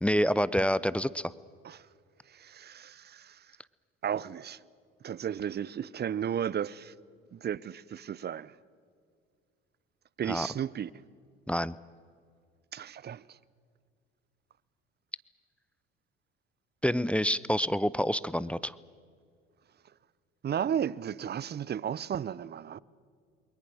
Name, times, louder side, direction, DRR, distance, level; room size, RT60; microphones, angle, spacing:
voice 1, 0.0-1.3 10.3-10.5 11.5-11.8 16.8-18.8, equal, 5° left, 0.5 m, -27 dB
voice 2, 2.3-3.6 4.0-4.6 5.0-6.9 7.3-8.6 10.2-10.9 12.7-13.4 20.4-22.8, right 9 dB, 35° right, 0.7 m, -34 dB
28.5 x 22.0 x 6.5 m
hypercardioid pair, 60°, 31 cm